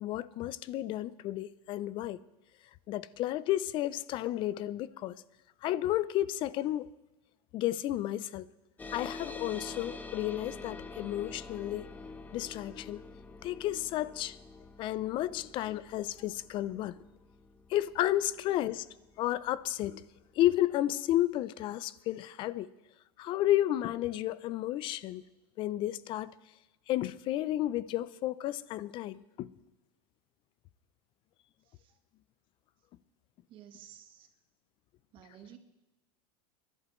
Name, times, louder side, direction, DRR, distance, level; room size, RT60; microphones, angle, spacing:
voice 1, 0.0-2.2 2.9-5.2 5.6-6.9 7.5-8.5 8.9-11.9 12.3-13.0 13.4-14.4 14.8-17.0 17.7-18.9 19.2-20.1 20.4-22.7 23.2-25.2 25.6-26.3 26.9-29.5, left 14 dB, 40° left, 0.5 m, -32 dB
sound 1, 8.8-19.7, left 3 dB, 15° left, 0.9 m, -47 dB
voice 2, 31.6-32.0 33.5-34.3 35.1-35.6, right 10 dB, 40° right, 1.3 m, -53 dB
26.0 x 11.5 x 3.1 m
supercardioid pair, 130°, 13 cm